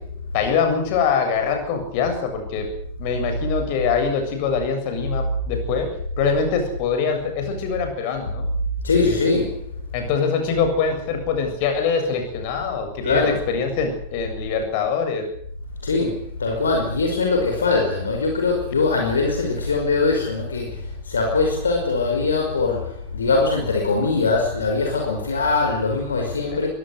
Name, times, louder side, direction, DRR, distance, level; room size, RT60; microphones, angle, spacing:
voice 1, 0.3-2.7 3.0-5.9 6.2-8.5 9.9-15.3 26.5-26.7, left 5 dB, 45° left, 6 dB, 7.4 m, -23 dB
voice 2, 8.8-9.7 13.0-13.4 15.8-26.7, left 3 dB, 70° left, 2 dB, 5.4 m, -22 dB
22.5 x 18.0 x 8.1 m, 0.63 s
figure-of-eight pair, 90°, 0 cm